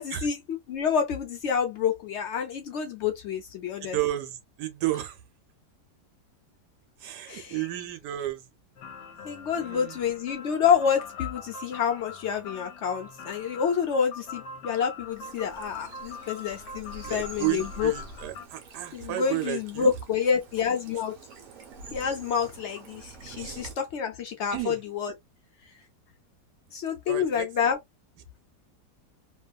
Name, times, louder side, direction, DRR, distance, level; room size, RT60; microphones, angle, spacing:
voice 1, 0.0-4.0 7.3-7.6 9.2-17.9 18.9-21.1 21.9-25.1 26.7-27.8, left 7 dB, 70° left, 0.6 m, -28 dB
voice 2, 3.8-5.2 7.0-8.5 9.6-10.0 17.0-19.9 23.4-23.7 24.5-24.8 27.1-27.5, right 15 dB, 80° right, 1.3 m, -32 dB
sound 1, 8.8-18.5, left 4 dB, 90° left, 1.3 m, -42 dB
Bird vocalization bird call bird song / Stream, 15.1-23.7, right 3 dB, 60° right, 1.1 m, -46 dB
3.0 x 2.3 x 2.3 m
omnidirectional pair, 1.8 m